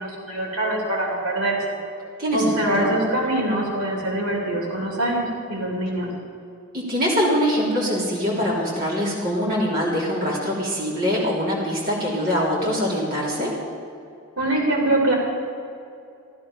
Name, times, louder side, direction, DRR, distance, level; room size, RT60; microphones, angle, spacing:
voice 1, 0.0-1.8 2.3-6.1 14.4-15.2, right 1 dB, 90° right, -1 dB, 3.2 m, -24 dB
voice 2, 2.2-2.9 6.7-13.5, equal, 40° right, -5 dB, 3.2 m, -23 dB
15.0 x 12.0 x 5.7 m, 2.5 s
head